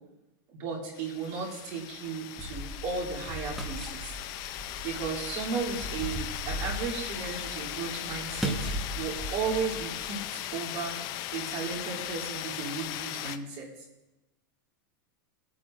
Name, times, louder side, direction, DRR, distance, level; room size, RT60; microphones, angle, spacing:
voice 1, 0.5-4.2 4.8-8.7 8.9-10.2 10.5-11.0 11.3-13.7, right 5 dB, 50° right, -4 dB, 3.1 m, -35 dB
sound 1, 0.9-13.4, left 13 dB, 40° left, 0.5 m, -38 dB
sound 2, 2.4-10.2, right 1 dB, ahead, 1.2 m, -38 dB
18.5 x 8.4 x 2.6 m, 0.99 s
supercardioid pair, 150°, 11 cm